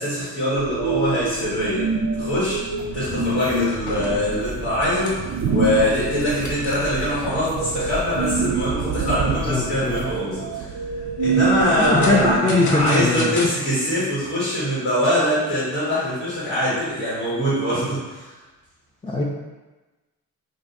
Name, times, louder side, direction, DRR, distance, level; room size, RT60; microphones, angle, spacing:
voice 1, 0.0-1.9 2.1-2.6 2.9-10.7 11.2-18.3, equal, 85° left, -11 dB, 1.4 m, -23 dB
sound 1, 0.5-12.4, right 4 dB, 55° right, 0.5 m, -26 dB
sound 2, 2.8-10.1, right 2 dB, 25° right, 0.9 m, -37 dB
sound 3, 2.9-3.0 3.4-7.1 7.6-7.7 8.1-8.2 8.7-9.1 9.7-10.3 11.3-13.5, left 2 dB, 50° left, 0.8 m, -34 dB
voice 2, 9.0-10.0 11.7-13.3 19.0-19.2, left 2 dB, 15° left, -4 dB, 0.5 m, -22 dB
2.5 x 2.4 x 3.9 m, 1.2 s
supercardioid pair, 45°, 38 cm